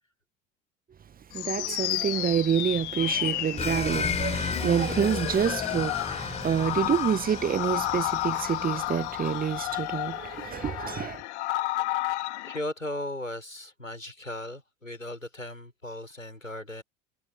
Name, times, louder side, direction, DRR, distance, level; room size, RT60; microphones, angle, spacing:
sound 1, 1.3-12.6, left 17 dB, 60° left, 2.1 m, -32 dB
voice 1, 1.3-11.2, right 8 dB, 25° right, 1.1 m, -27 dB
sound 2, 3.6-9.8, left 4 dB, 15° left, 4.0 m, -35 dB
voice 2, 12.4-16.8, left 1 dB, 90° left, 6.6 m, -37 dB
figure-of-eight pair, 70°, 38 cm